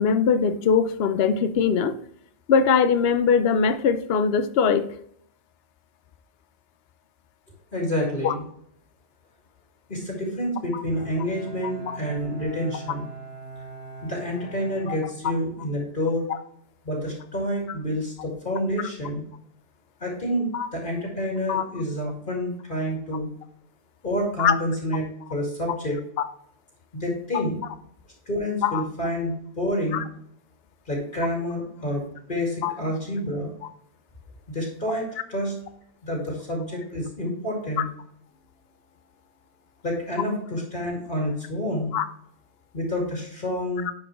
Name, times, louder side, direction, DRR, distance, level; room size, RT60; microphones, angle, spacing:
voice 1, 0.0-2.0 2.5-4.9 8.2-8.3 10.7-10.8 11.9-12.0 14.9-15.0 20.5-20.7 21.5-21.6 24.4-24.5 28.6-28.8 29.9-30.0 32.6-32.7 41.9-42.0 43.9-44.0, left 6 dB, 60° left, 11 dB, 0.8 m, -21 dB
voice 2, 7.7-8.4 9.9-13.1 14.0-16.2 16.8-19.2 20.0-23.3 24.0-26.0 26.9-27.6 28.3-30.0 30.9-33.5 34.5-35.5 36.0-37.9 39.8-41.9 42.7-43.9, equal, 40° left, -1 dB, 2.3 m, -28 dB
Bowed string instrument, 10.9-15.8, right 3 dB, 55° right, 2.5 m, -42 dB
10.5 x 4.7 x 3.1 m, 0.67 s
omnidirectional pair, 1.3 m